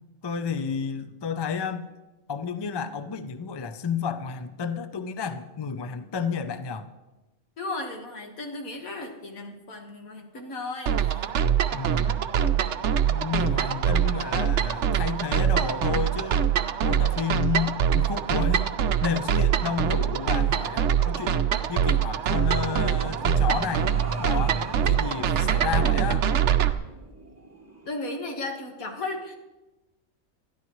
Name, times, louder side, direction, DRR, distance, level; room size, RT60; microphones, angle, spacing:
voice 1, 0.2-1.9 2.3-6.9 11.7-12.2 13.0-16.5 16.8-21.4 21.7-23.9 24.2-26.3, left 6 dB, 30° left, 9 dB, 0.4 m, -31 dB
voice 2, 7.6-11.3 27.9-29.4, left 2 dB, 85° left, 2 dB, 2.0 m, -35 dB
sound 1, 10.9-26.7, right 9 dB, 65° right, 0.9 m, -24 dB
sound 2, 19.1-28.0, right 1 dB, 15° right, 0.9 m, -39 dB
21.0 x 13.5 x 3.1 m, 1.1 s
omnidirectional pair, 1.4 m